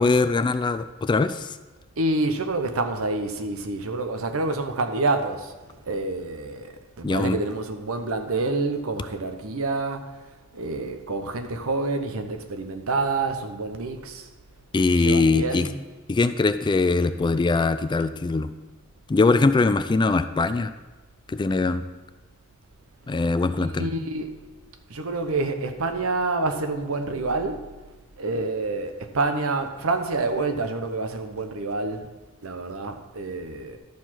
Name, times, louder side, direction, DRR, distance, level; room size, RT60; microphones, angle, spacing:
voice 1, 0.0-1.6 7.0-7.4 14.7-15.7 16.1-18.5 19.1-20.7 21.3-21.8 23.1-23.9, left 3 dB, 20° left, 0.3 m, -22 dB
voice 2, 2.0-10.1 10.5-14.3 14.9-15.8 23.6-24.4 24.9-27.6 28.2-32.1 32.4-33.8, right 3 dB, 80° right, 0.9 m, -28 dB
12.0 x 4.7 x 5.8 m
head